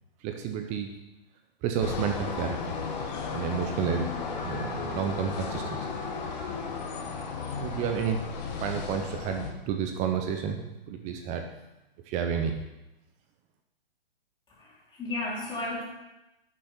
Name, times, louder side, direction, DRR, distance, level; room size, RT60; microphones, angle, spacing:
voice 1, 0.2-0.9 1.6-2.7 3.3-4.1 4.4-5.9 7.6-8.2 8.6-10.6 10.9-11.5 12.1-12.6, right 7 dB, 25° right, 5 dB, 0.8 m, -30 dB
sound 1, 1.8-9.5, left 5 dB, 45° left, 1.8 m, -34 dB
voice 2, 14.6-15.8, left 2 dB, 15° left, -6 dB, 3.8 m, -34 dB
11.5 x 6.6 x 4.5 m, 0.97 s
hypercardioid pair, 130°, 30 cm